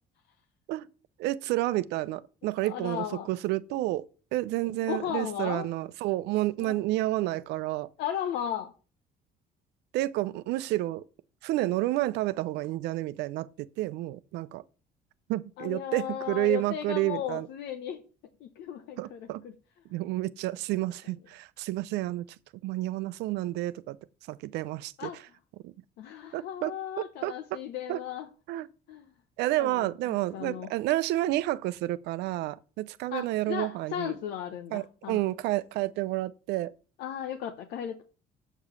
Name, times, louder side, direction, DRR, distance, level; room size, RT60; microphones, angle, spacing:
voice 1, 1.2-7.9 9.9-11.0 11.4-14.6 15.3-17.5 19.0-19.4 19.9-22.3 22.6-24.0 24.3-25.1 25.6-25.7 26.3-26.7 27.2-27.6 27.9-28.0 28.5-28.7 29.4-34.2 34.7-36.7, right 16 dB, 90° right, 0.6 m, -30 dB
voice 2, 2.6-3.3 4.9-5.7 6.6-6.8 8.0-8.7 15.6-18.0 18.4-19.5 25.0-25.2 26.0-28.3 28.9-29.1 29.6-30.7 33.1-35.2 37.0-38.0, left 10 dB, 80° left, 0.9 m, -35 dB
7.7 x 5.0 x 6.9 m
cardioid pair, 110°, 17 cm